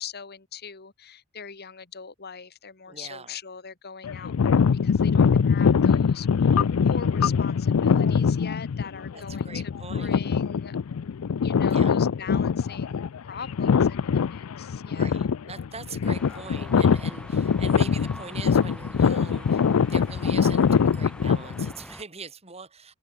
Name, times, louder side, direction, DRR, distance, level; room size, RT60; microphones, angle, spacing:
voice 1, 0.0-10.8 11.4-15.2, left 6 dB, 50° left, 1.8 m, -42 dB
voice 2, 2.9-3.4 9.1-10.2 11.7-12.0 14.9-19.6 19.9-22.9, right 4 dB, 30° right, 3.6 m, -42 dB
sound 1, 4.0-21.7, left 6 dB, 85° left, 0.4 m, -23 dB
sound 2, 16.0-22.0, left 1 dB, 5° left, 1.7 m, -44 dB
head